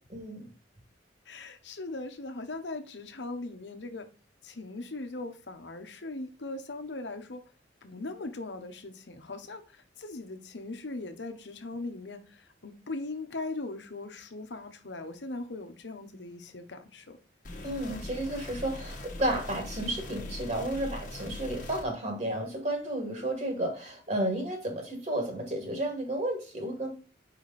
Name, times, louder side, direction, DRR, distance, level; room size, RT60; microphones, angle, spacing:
voice 1, 0.1-0.5 17.6-26.9, right 1 dB, 40° right, 2.2 m, -32 dB
voice 2, 1.3-4.1 4.4-7.4 7.8-17.2, left 2 dB, 70° left, 1.0 m, -39 dB
sound 1, 17.4-21.8, left 1 dB, 45° left, 1.2 m, -41 dB
4.9 x 4.8 x 4.1 m
head